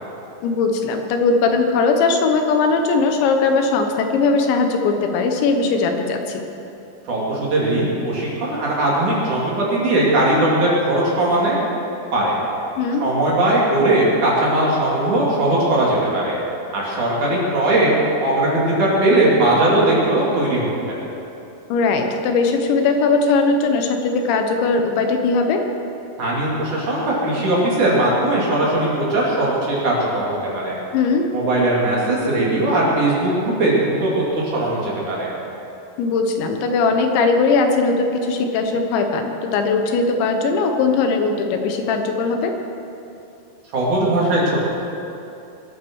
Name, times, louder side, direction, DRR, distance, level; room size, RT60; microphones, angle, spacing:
voice 1, 0.4-6.4 12.8-13.1 21.7-25.6 30.9-31.3 36.0-42.5, left 4 dB, 90° left, 4 dB, 3.6 m, -19 dB
voice 2, 7.1-11.6 12.1-12.4 13.0-16.4 16.7-17.9 18.2-21.0 26.2-30.8 31.3-34.2 34.5-35.3 43.7-44.6, right 1 dB, 45° right, -5 dB, 4.2 m, -19 dB
22.0 x 9.0 x 6.4 m, 2.8 s
omnidirectional pair, 5.1 m